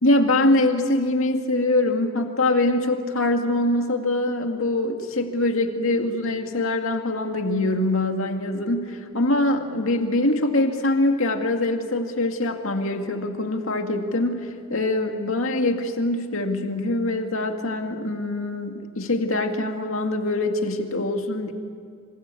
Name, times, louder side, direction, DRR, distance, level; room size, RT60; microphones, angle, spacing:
voice 1, 0.0-21.5, left 2 dB, 70° left, 4 dB, 2.2 m, -23 dB
27.0 x 25.5 x 8.5 m, 2.2 s
head